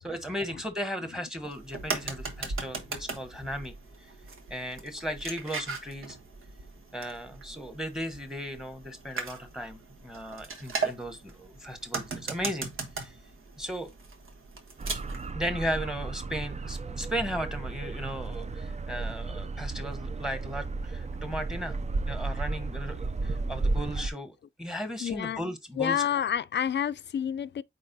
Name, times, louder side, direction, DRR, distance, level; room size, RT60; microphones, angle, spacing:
voice 1, 0.0-3.7 4.0-4.1 4.5-6.2 6.9-12.7 13.0-13.2 13.6-13.9 15.3-21.8 22.1-26.0, equal, ahead, 1.2 m, -36 dB
sound 1, 1.5-15.3, right 4 dB, 85° right, 1.3 m, -38 dB
sound 2, 14.8-24.1, right 3 dB, 35° right, 0.5 m, -33 dB
voice 2, 25.0-25.4 25.8-27.6, left 9 dB, 60° left, 0.4 m, -29 dB
8.6 x 4.2 x 2.7 m
wide cardioid pair, 135°, 21 cm